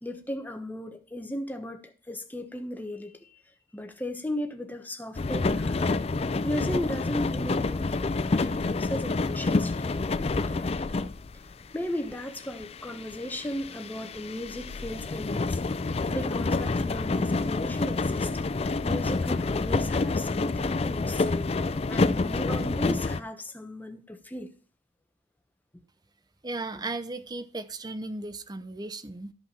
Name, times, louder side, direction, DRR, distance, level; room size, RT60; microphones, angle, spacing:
voice 1, 0.0-3.4 3.7-6.0 6.4-8.0 8.3-10.0 10.5-11.0 11.7-15.6 16.1-18.3 18.8-21.5 21.9-24.5, left 1 dB, 10° left, 1.1 m, -36 dB
sound 1, 5.2-11.6 12.1-23.2, left 3 dB, 35° left, 0.4 m, -28 dB
voice 2, 26.4-29.3, right 2 dB, 20° right, 0.6 m, -36 dB
13.0 x 5.6 x 5.7 m
head